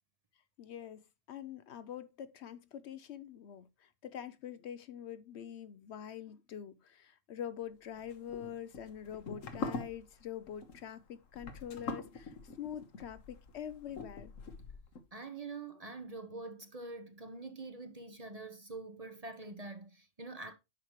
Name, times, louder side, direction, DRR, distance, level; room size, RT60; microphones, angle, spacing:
voice 1, 0.6-14.3, left 9 dB, 65° left, 0.8 m, -45 dB
sound 1, 8.0-15.0, left 3 dB, 85° left, 1.6 m, -44 dB
voice 2, 15.1-20.5, right 3 dB, 35° right, 0.8 m, -45 dB
9.7 x 6.2 x 3.1 m
omnidirectional pair, 1.3 m